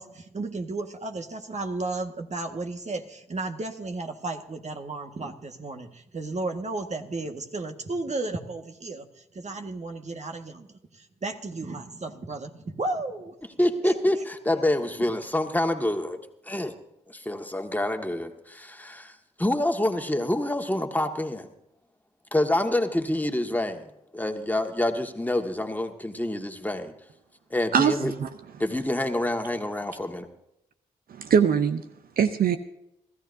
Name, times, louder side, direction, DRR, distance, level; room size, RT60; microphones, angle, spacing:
voice 1, 0.0-10.7 10.9-13.9, right 2 dB, 45° right, 5 dB, 1.6 m, -34 dB
voice 2, 13.6-16.2 16.4-16.7 17.1-21.5 22.3-23.8 24.1-26.9 27.5-28.1 28.6-30.3, left 1 dB, 10° left, 4 dB, 1.7 m, -27 dB
voice 3, 27.7-28.3 31.1-31.8 32.2-32.6, right 7 dB, 65° right, 9 dB, 0.7 m, -22 dB
25.5 x 13.5 x 2.7 m, 0.84 s
supercardioid pair, 40°, 16 cm